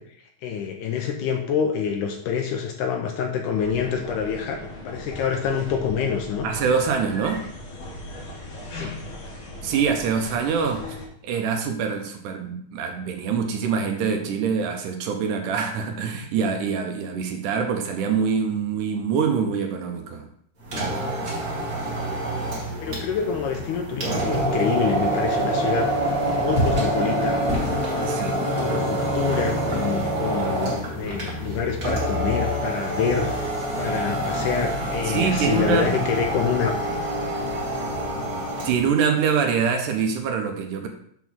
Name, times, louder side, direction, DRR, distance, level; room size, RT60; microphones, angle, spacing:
voice 1, 0.4-4.6 4.9-6.5 8.7-8.9 22.8-25.9 26.4-28.2 28.6-36.7, left 7 dB, 75° left, 3 dB, 2.0 m, -27 dB
sound 1, 3.5-11.1, left 1 dB, 55° left, 1.6 m, -38 dB
voice 2, 6.4-7.4 9.6-10.9 11.2-20.3 28.0-28.4 35.0-35.9 38.6-40.9, right 6 dB, 75° right, 4 dB, 2.2 m, -24 dB
sound 2, 20.6-38.9, right 1 dB, 30° right, 1.9 m, -26 dB
7.1 x 3.8 x 6.1 m, 0.66 s
omnidirectional pair, 4.0 m